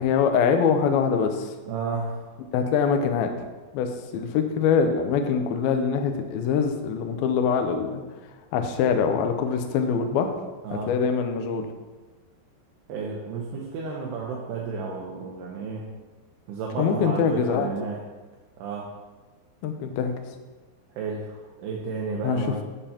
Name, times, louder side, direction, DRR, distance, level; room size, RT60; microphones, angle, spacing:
voice 1, 0.0-1.5 2.5-3.3 3.7-3.9 4.1-8.0 8.5-10.4 10.9-11.7 16.8-17.7 19.6-20.1 22.2-22.6, left 6 dB, 85° left, 5 dB, 2.1 m, -23 dB
voice 2, 1.7-2.3 10.6-10.9 12.9-15.9 16.5-18.0 18.6-18.9 21.0-22.6, right 4 dB, 75° right, -2 dB, 2.6 m, -32 dB
13.0 x 6.8 x 2.9 m, 1.3 s
omnidirectional pair, 5.3 m